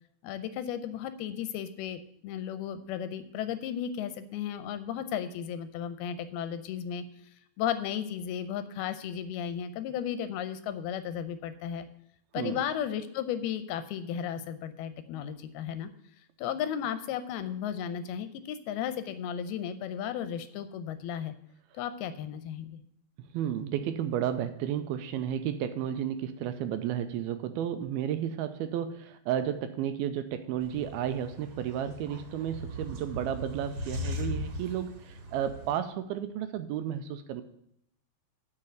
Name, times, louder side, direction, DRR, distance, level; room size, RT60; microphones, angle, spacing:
voice 1, 0.2-7.0 7.6-11.9 12.3-15.9 16.4-21.3 21.7-22.8, left 9 dB, 80° left, 11 dB, 2.5 m, -34 dB
voice 2, 23.2-37.4, right 10 dB, 80° right, 9 dB, 2.4 m, -32 dB
sound 1, 30.6-35.7, left 1 dB, 50° right, 2.3 m, -39 dB
7.2 x 6.7 x 7.6 m, 0.74 s
omnidirectional pair, 4.6 m